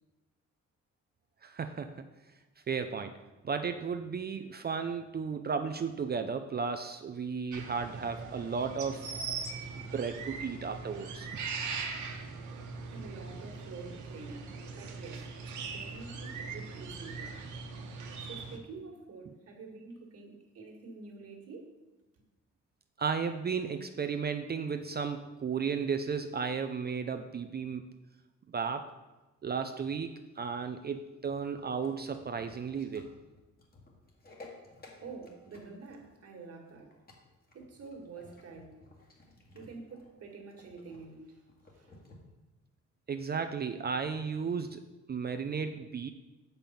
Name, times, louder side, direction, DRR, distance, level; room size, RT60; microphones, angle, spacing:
voice 1, 1.4-2.1 2.7-3.1 3.4-9.4 9.7-11.3 23.0-27.8 28.5-28.9 29.4-33.1 43.1-44.8 45.1-46.1, right 5 dB, 35° right, 7 dB, 0.5 m, -34 dB
sound 1, 7.5-18.6, right 4 dB, 75° right, 1.2 m, -40 dB
voice 2, 12.9-15.4 15.7-17.4 18.2-21.7 35.0-37.0 37.5-38.8 39.5-41.4 41.7-41.9, right 4 dB, 50° right, 1 dB, 1.9 m, -48 dB
sound 2, 31.5-42.2, left 2 dB, 30° left, 2.0 m, -55 dB
6.9 x 5.3 x 5.8 m, 1.1 s
cardioid pair, 90°, 30 cm